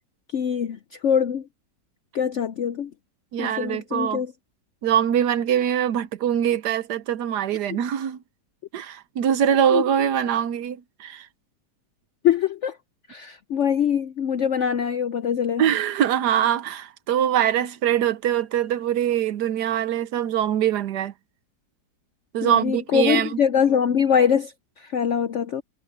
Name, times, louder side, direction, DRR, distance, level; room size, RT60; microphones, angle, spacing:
voice 1, 0.3-1.4 2.1-2.9 3.4-4.3 9.7-9.8 12.2-12.8 13.1-15.6 22.4-25.6, left 8 dB, 70° left, 0.7 m, -23 dB
voice 2, 3.3-4.2 4.8-8.2 8.7-11.3 15.6-21.1 22.3-23.4, right 9 dB, 75° right, 1.4 m, -23 dB
omnidirectional pair, 1.9 m